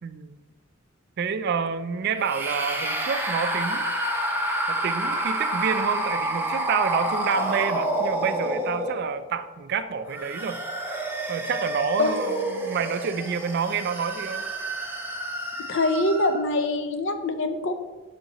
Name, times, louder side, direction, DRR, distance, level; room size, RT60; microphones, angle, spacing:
voice 1, 0.0-0.4 1.2-3.9 4.7-10.6 11.3-14.5, right 6 dB, 55° right, 11 dB, 0.4 m, -28 dB
sound 1, 2.2-9.3 10.0-16.5, right 1 dB, 10° right, 0.7 m, -29 dB
voice 2, 15.7-17.7, left 2 dB, 60° left, 8 dB, 0.6 m, -24 dB
6.7 x 5.7 x 3.0 m, 1.2 s
head